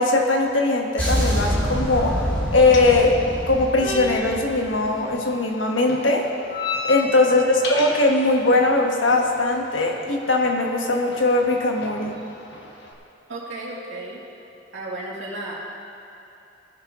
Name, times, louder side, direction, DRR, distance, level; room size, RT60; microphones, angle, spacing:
voice 1, 0.0-2.2 2.5-3.2 3.5-6.3 6.8-12.2, left 2 dB, 90° left, 1 dB, 1.4 m, -20 dB
sound 1, 1.0-5.1, equal, 10° left, 2.8 m, -26 dB
sound 2, 1.5-12.9, left 3 dB, 65° left, 1.5 m, -35 dB
voice 2, 7.0-7.3 13.3-14.2 14.7-15.5, right 2 dB, 75° right, -5 dB, 2.8 m, -34 dB
20.0 x 10.5 x 3.1 m, 2.8 s
head